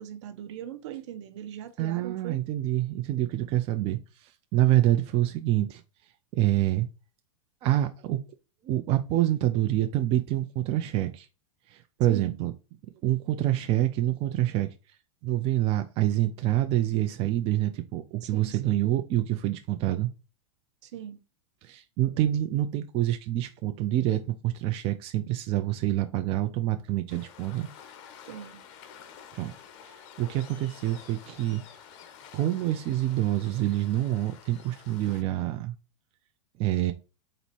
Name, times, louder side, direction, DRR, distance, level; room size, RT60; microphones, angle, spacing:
voice 1, 0.0-2.4 12.1-12.4 18.2-18.8 20.8-21.2 28.3-28.6, right 10 dB, 65° right, 0.8 m, -40 dB
voice 2, 1.8-5.8 6.4-6.9 7.6-8.2 8.6-11.3 11.7-12.5 13.0-14.7 15.2-20.1 21.6-27.7 29.3-29.5 30.2-31.6 32.3-35.7 36.6-36.9, right 14 dB, 35° right, 0.5 m, -26 dB
Waves surf, 27.1-35.2, left 8 dB, 55° left, 0.8 m, -50 dB
4.2 x 2.6 x 4.3 m
hypercardioid pair, 120°, 16 cm